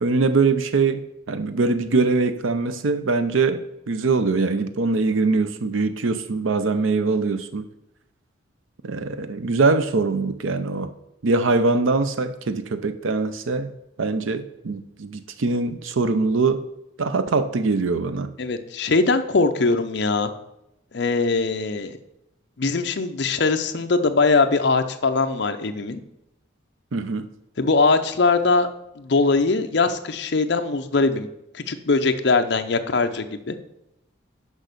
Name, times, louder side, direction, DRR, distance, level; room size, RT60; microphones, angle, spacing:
voice 1, 0.0-1.0 1.3-7.6 8.8-10.9 11.2-13.7 14.0-16.6 17.0-18.3 26.9-27.3, right 3 dB, 80° right, 0.6 m, -22 dB
voice 2, 18.4-20.3 20.9-22.0 22.6-26.0 27.6-28.7 29.0-31.3 31.5-33.6, left 3 dB, 60° left, 0.6 m, -21 dB
6.3 x 5.4 x 6.6 m
head